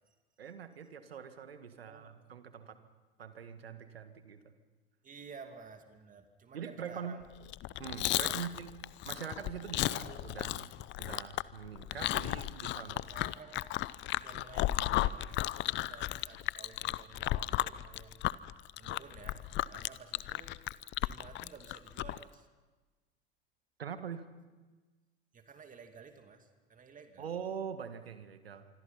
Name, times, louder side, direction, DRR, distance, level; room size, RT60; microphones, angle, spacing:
voice 1, 0.4-2.8 3.2-4.6 6.5-7.2 7.8-8.7 9.1-10.7 11.0-13.0 15.8-15.9 23.8-24.3 27.2-28.7, right 7 dB, 85° right, 10 dB, 1.7 m, -43 dB
voice 2, 1.7-2.1 5.0-7.3 8.3-8.4 13.1-13.8 14.1-18.3 18.8-20.5 21.0-22.5 25.3-27.3, right 5 dB, 25° right, 6 dB, 2.5 m, -53 dB
Chewing mastication, 7.4-22.2, left 16 dB, 40° left, 0.7 m, -34 dB
25.5 x 25.0 x 5.7 m, 1.3 s
hypercardioid pair, 80°, 29 cm